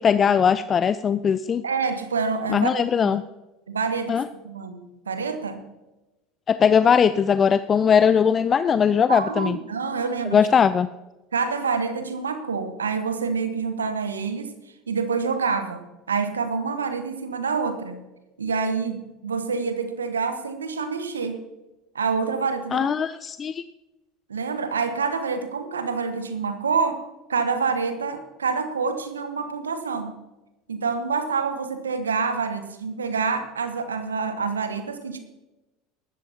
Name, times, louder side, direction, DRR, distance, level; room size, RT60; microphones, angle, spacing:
voice 1, 0.0-1.6 2.5-3.2 4.1-4.2 6.5-9.6 10.3-10.9 22.7-23.6, left 7 dB, 30° left, 14 dB, 0.4 m, -20 dB
voice 2, 1.6-3.2 3.7-5.6 9.1-10.5 11.3-14.6 14.9-18.0 18.4-21.4 21.9-22.9 24.3-27.0 27.3-30.2 30.7-35.2, right 5 dB, 85° right, 9 dB, 1.2 m, -27 dB
18.5 x 13.0 x 2.8 m, 1.0 s
figure-of-eight pair, 75°, 0 cm